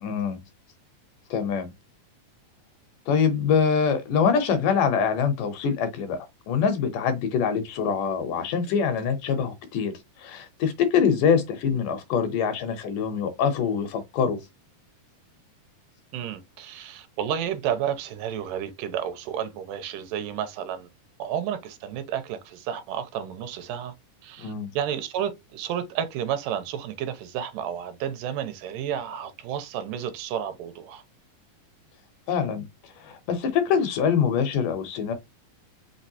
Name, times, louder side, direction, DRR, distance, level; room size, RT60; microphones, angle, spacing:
voice 1, 0.0-0.4 1.3-1.7 3.1-9.9 10.2-14.4 24.4-24.7 32.3-35.1, left 6 dB, 75° left, 2.2 m, -24 dB
voice 2, 16.1-20.9 21.2-23.9 24.2-31.0, right 9 dB, 80° right, 2.3 m, -31 dB
5.4 x 3.1 x 2.8 m
omnidirectional pair, 3.9 m